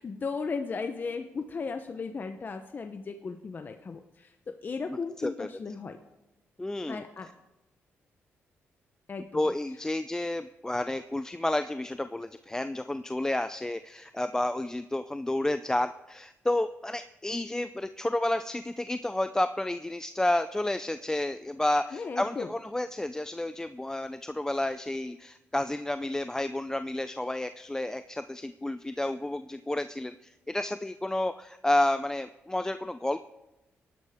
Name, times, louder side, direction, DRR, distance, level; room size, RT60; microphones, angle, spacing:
voice 1, 0.0-6.0 6.9-7.3 9.1-9.5 21.9-22.5, left 4 dB, 40° left, 7 dB, 0.8 m, -36 dB
voice 2, 6.6-7.0 9.3-33.2, left 1 dB, 10° left, 10 dB, 0.4 m, -30 dB
18.5 x 11.0 x 3.6 m, 0.97 s
cardioid pair, 80°, 5 cm